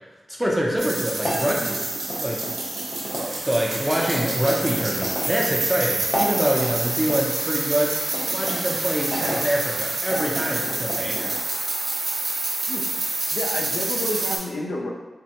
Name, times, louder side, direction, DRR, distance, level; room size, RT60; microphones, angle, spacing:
voice 1, 0.3-1.8 2.2-2.5 3.1-11.3, equal, 5° right, -2 dB, 0.5 m, -25 dB
sound 1, 0.8-14.4, right 2 dB, 70° right, 0.6 m, -28 dB
sound 2, 1.2-3.2 4.0-5.3 6.0-7.2 8.1-9.4 10.0-11.4, equal, 25° left, 0.8 m, -32 dB
voice 2, 13.3-14.9, left 2 dB, 80° left, -2 dB, 0.4 m, -30 dB
3.2 x 2.1 x 2.8 m, 1.2 s
wide cardioid pair, 100°, 0 cm